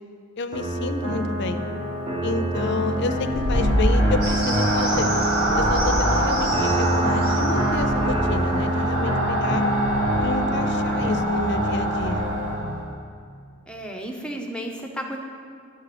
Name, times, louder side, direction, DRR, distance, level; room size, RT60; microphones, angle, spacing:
voice 1, 0.4-1.6 2.2-5.1 5.6-9.6 10.2-12.3, left 3 dB, 60° left, 10 dB, 0.5 m, -30 dB
sound 1, 0.5-12.5, right 1 dB, 25° right, 1.2 m, -26 dB
sound 2, 2.9-12.9, right 1 dB, 70° right, 1.4 m, -25 dB
sound 3, 4.2-9.0, equal, 50° right, 2.6 m, -33 dB
voice 2, 13.7-15.2, right 1 dB, 5° left, 1 dB, 0.7 m, -33 dB
10.5 x 6.7 x 4.9 m, 2.3 s
head